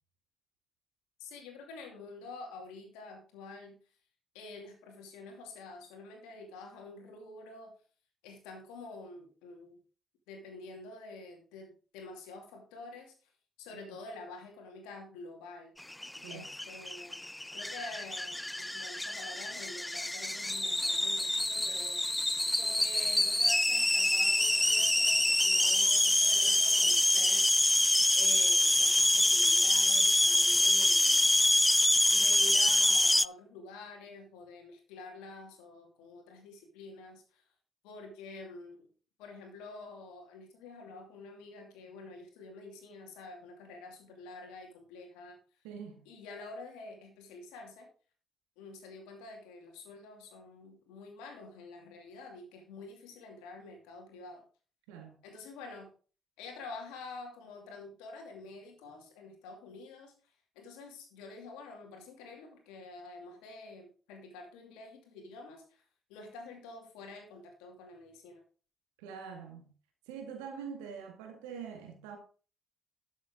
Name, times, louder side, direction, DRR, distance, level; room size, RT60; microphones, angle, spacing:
voice 1, 1.2-3.8 4.3-7.7 8.2-9.8 10.3-13.1 13.6-15.7 16.3-17.3 17.5-22.0 22.6-27.4 28.1-31.2 32.1-37.4 37.8-38.9 39.2-45.4 46.1-47.9 48.6-54.4 55.2-55.9 56.4-65.8 66.1-68.4, left 3 dB, 80° left, 2.5 m, -48 dB
sound 1, 15.9-33.3, left 1 dB, 15° left, 0.4 m, -26 dB
voice 2, 45.6-46.0 54.9-55.2 69.0-69.7 70.1-72.2, right 6 dB, 85° right, 1.9 m, -44 dB
12.0 x 7.3 x 3.7 m
hypercardioid pair, 45°, 0 cm